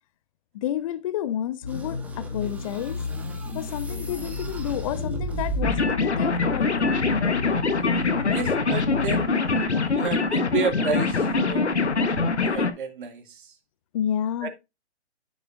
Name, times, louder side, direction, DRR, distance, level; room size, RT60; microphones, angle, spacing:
voice 1, 0.5-3.0 3.5-6.7 13.9-14.5, left 11 dB, 30° left, 0.8 m, -30 dB
sound 1, 1.6-9.3, left 4 dB, 60° left, 3.0 m, -34 dB
sound 2, 1.7-6.0, right 3 dB, 5° right, 0.7 m, -35 dB
sound 3, 5.6-12.7, left 4 dB, 80° left, 1.4 m, -24 dB
voice 2, 8.3-9.6 9.9-12.1 12.4-13.2 14.4-14.5, right 5 dB, 50° right, 2.2 m, -31 dB
9.9 x 8.9 x 2.5 m
figure-of-eight pair, 130°, 34 cm